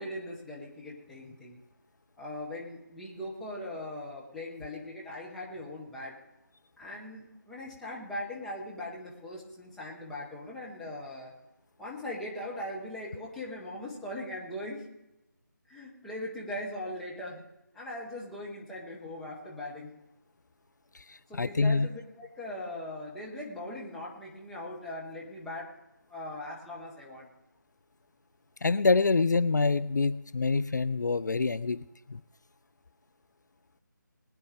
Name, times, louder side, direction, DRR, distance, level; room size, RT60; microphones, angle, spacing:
voice 1, 0.0-1.6 2.2-6.1 6.8-11.3 11.8-14.9 15.7-17.4 17.7-19.9 21.3-25.7 26.1-27.3, left 1 dB, ahead, -5 dB, 1.0 m, -40 dB
voice 2, 20.9-21.9 28.6-31.8 32.1-32.2, left 4 dB, 65° left, 16 dB, 0.4 m, -26 dB
20.5 x 9.7 x 3.4 m, 0.90 s
figure-of-eight pair, 160°, 11 cm